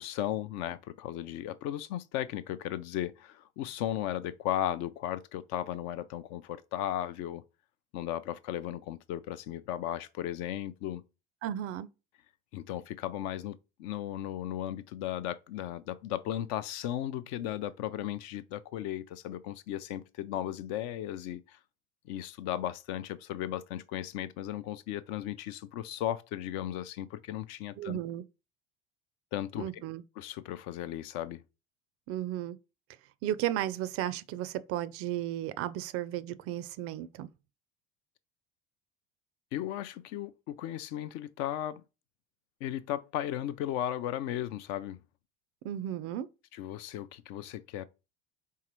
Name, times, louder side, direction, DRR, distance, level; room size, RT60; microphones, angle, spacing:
voice 1, 0.0-7.4 7.9-11.0 12.5-21.6 22.1-28.0 29.3-29.8 30.2-31.4 39.5-41.8 42.6-45.0 46.5-47.9, left 12 dB, 55° left, 0.5 m, -36 dB
voice 2, 11.4-11.9 27.8-28.2 29.6-30.0 32.1-32.6 33.2-37.3 45.6-46.3, right 12 dB, 45° right, 0.4 m, -34 dB
4.7 x 3.3 x 3.0 m
hypercardioid pair, 70°, 34 cm